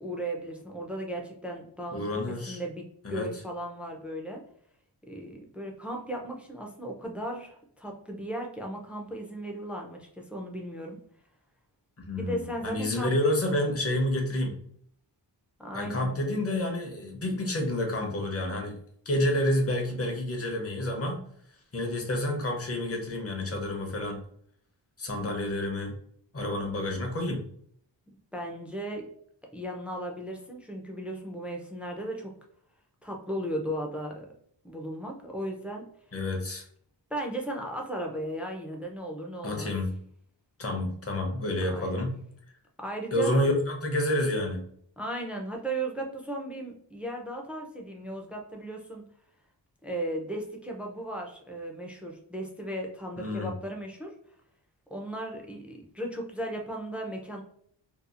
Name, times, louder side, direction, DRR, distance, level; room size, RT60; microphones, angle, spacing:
voice 1, 0.0-4.4 5.1-11.0 12.2-13.1 15.6-16.2 25.2-25.4 28.3-29.1 29.5-32.3 33.0-34.3 34.6-35.8 37.1-39.7 41.7-42.1 42.8-43.3 45.0-49.0 49.8-54.1 54.9-57.4, right 1 dB, 5° right, 1 dB, 0.4 m, -36 dB
voice 2, 1.9-2.6 3.0-3.3 12.1-14.6 15.7-18.8 19.1-21.2 21.7-24.2 25.0-25.9 26.3-27.4 36.1-36.6 39.4-39.9 40.6-42.1 43.1-44.6 53.2-53.5, left 1 dB, 35° left, 2 dB, 0.7 m, -29 dB
2.8 x 2.3 x 2.4 m, 0.64 s
wide cardioid pair, 115°, 44 cm